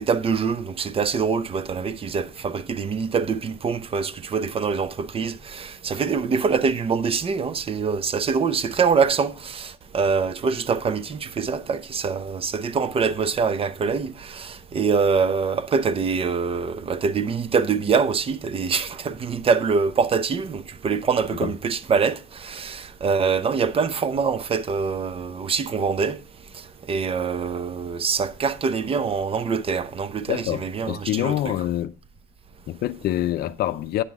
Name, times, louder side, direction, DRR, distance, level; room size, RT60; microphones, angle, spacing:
voice 1, 0.0-26.2 26.9-31.6, right 5 dB, 35° right, 0.7 m, -24 dB
voice 2, 30.3-31.9 32.7-34.0, left 13 dB, 65° left, 0.5 m, -26 dB
9.8 x 6.0 x 3.5 m
cardioid pair, 110°, 17 cm